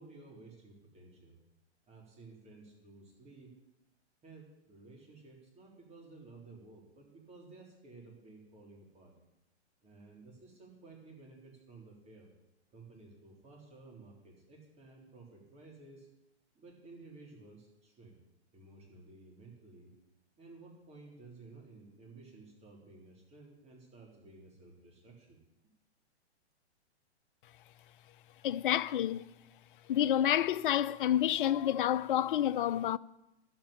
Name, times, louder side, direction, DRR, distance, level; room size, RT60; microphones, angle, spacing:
voice 1, 0.0-1.4 1.9-3.5 4.2-9.1 9.8-12.3 12.7-16.1 16.5-18.2 18.5-19.9 20.4-25.4, right 3 dB, 20° right, 3.8 m, -54 dB
voice 2, 28.4-29.3 29.9-33.0, left 11 dB, 50° left, 0.5 m, -29 dB
11.5 x 8.1 x 8.8 m
hypercardioid pair, 135°, 34 cm